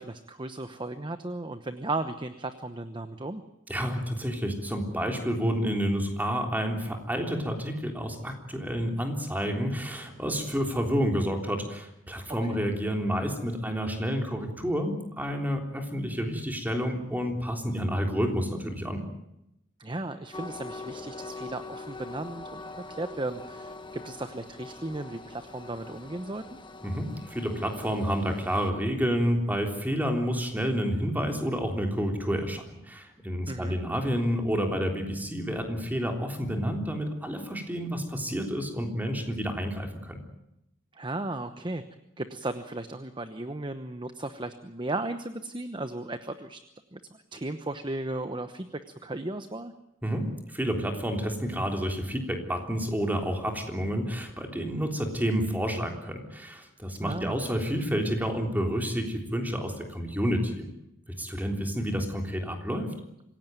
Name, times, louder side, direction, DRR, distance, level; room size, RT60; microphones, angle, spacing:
voice 1, 0.0-3.4 12.4-12.6 19.8-26.6 33.5-33.8 40.9-41.8 42.2-46.6 46.9-47.0 47.3-49.7 57.0-57.4, right 2 dB, 25° right, 10 dB, 1.0 m, -35 dB
voice 2, 3.7-19.0 26.8-40.2 50.0-60.7 61.2-62.9, equal, 10° right, 3 dB, 3.5 m, -29 dB
Train, 20.3-28.7, left 3 dB, 25° left, 1.4 m, -43 dB
26.0 x 17.0 x 9.1 m, 0.85 s
head